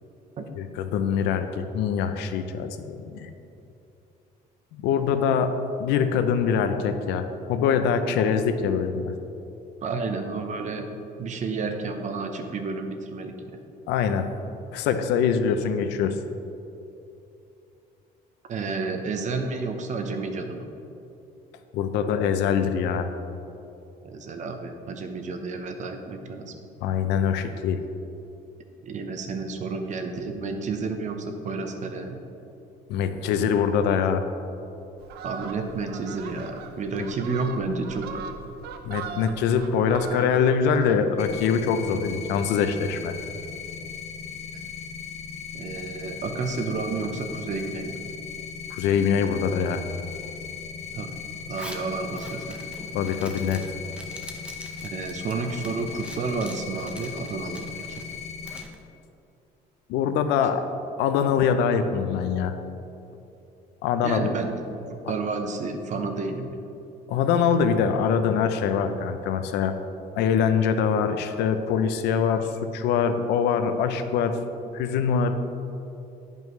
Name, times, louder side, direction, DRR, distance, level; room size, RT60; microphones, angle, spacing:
voice 1, 0.6-3.3 4.7-5.5 5.8-9.1 13.9-14.3 14.7-16.2 21.7-23.1 26.8-27.8 32.9-34.2 38.8-43.1 48.7-49.8 52.9-53.6 59.9-60.6 61.0-62.5 63.8-64.3 67.1-69.7 70.1-72.5 72.7-74.4 74.7-75.3, left 7 dB, 90° left, 8 dB, 0.5 m, -23 dB
voice 2, 9.8-10.9 11.2-13.4 18.5-20.6 24.0-26.5 28.8-32.2 35.2-38.2 45.5-48.0 50.9-51.1 51.5-52.6 54.8-58.0 64.0-64.6 64.9-66.5, right 4 dB, 45° right, 5 dB, 0.8 m, -31 dB
Fowl, 35.0-41.3 41.7-41.9, right 6 dB, 75° right, 0.6 m, -40 dB
sound 1, 41.2-58.6, left 6 dB, 40° left, 0.5 m, -38 dB
Zipper (clothing), 51.4-58.8, right 1 dB, 5° right, 0.7 m, -45 dB
10.5 x 5.3 x 3.1 m, 2.8 s
cardioid pair, 110°, 17 cm